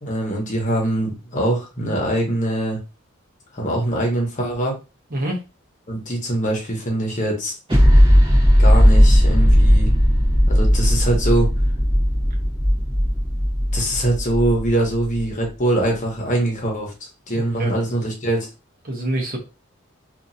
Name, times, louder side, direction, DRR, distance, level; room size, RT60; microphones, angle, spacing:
voice 1, 0.0-2.8 3.5-4.8 5.9-7.5 8.6-9.9 10.5-11.5 13.7-18.5, right 1 dB, 35° left, 0 dB, 0.9 m, -23 dB
voice 2, 5.1-5.4 17.3-17.7 18.8-19.4, right 1 dB, 45° right, 0 dB, 0.9 m, -26 dB
sound 1, 7.7-15.2, equal, 25° right, 1.1 m, -16 dB
2.9 x 2.5 x 2.6 m, 0.29 s
head